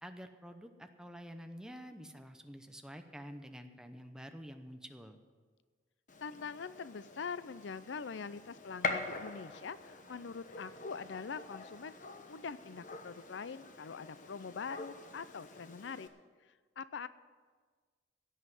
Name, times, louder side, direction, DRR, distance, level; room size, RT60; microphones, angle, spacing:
voice 1, 0.0-5.2, equal, 5° right, 6 dB, 0.8 m, -49 dB
Gunshot gunfire, 6.1-16.1, left 3 dB, 45° left, 1.1 m, -45 dB
voice 2, 6.2-11.9 12.3-16.1 16.8-17.1, left 5 dB, 80° left, 15 dB, 0.5 m, -43 dB
16.5 x 5.6 x 9.8 m, 1.5 s
head